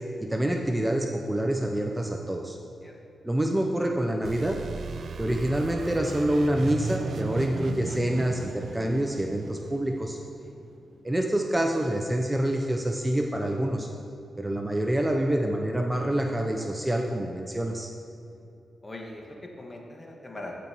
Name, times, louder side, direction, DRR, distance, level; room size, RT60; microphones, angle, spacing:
voice 1, 0.2-2.6 3.2-4.6 5.2-10.2 11.0-13.9 14.4-17.9, right 1 dB, 15° right, 2 dB, 0.6 m, -27 dB
sound 1, 4.2-10.8, right 5 dB, 65° right, 0.4 m, -37 dB
voice 2, 18.8-20.6, left 1 dB, 30° left, 0 dB, 1.6 m, -41 dB
14.0 x 5.3 x 3.1 m, 2.7 s
supercardioid pair, 45°, 0 cm